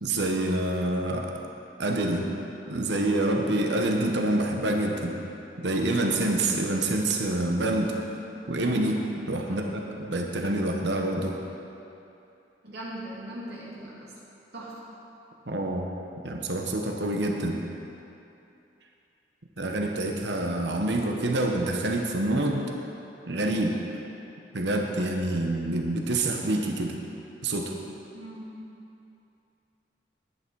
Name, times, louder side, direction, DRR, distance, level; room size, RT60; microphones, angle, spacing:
voice 1, 0.0-1.3 1.8-2.3 2.7-5.2 5.6-8.0 8.5-11.4 15.5-15.9 16.2-17.6 19.6-22.7 23.3-23.9 24.5-27.0 27.4-27.7, right 1 dB, 85° right, 2 dB, 1.1 m, -27 dB
voice 2, 9.5-9.8 12.6-14.1 14.5-14.7 28.1-28.5, right 1 dB, 70° right, -7 dB, 3.0 m, -40 dB
11.0 x 10.5 x 4.7 m, 2.8 s
head